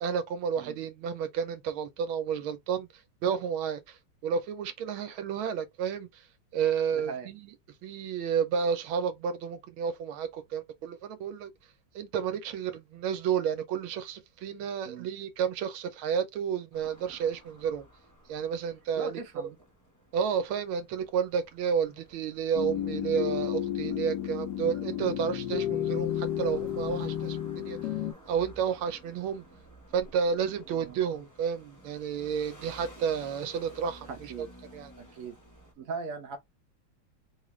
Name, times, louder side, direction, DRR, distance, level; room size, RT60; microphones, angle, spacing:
voice 1, 0.0-2.9 3.2-4.0 4.2-6.2 6.5-7.5 7.8-11.5 11.9-17.9 18.3-19.2 20.1-27.4 27.6-27.8 28.3-29.4 29.9-34.5 34.7-34.9, right 7 dB, 90° right, 1.5 m, -31 dB
voice 2, 6.9-7.3 14.8-15.1 19.0-19.6 23.2-23.5 30.7-31.0 34.1-34.5 35.0-35.4 35.8-36.4, right 4 dB, 55° right, 1.0 m, -39 dB
sound 1, 16.7-35.7, right 1 dB, 15° left, 0.6 m, -54 dB
sound 2, 22.5-28.1, left 11 dB, 65° left, 1.1 m, -32 dB
3.7 x 2.4 x 3.1 m
omnidirectional pair, 2.2 m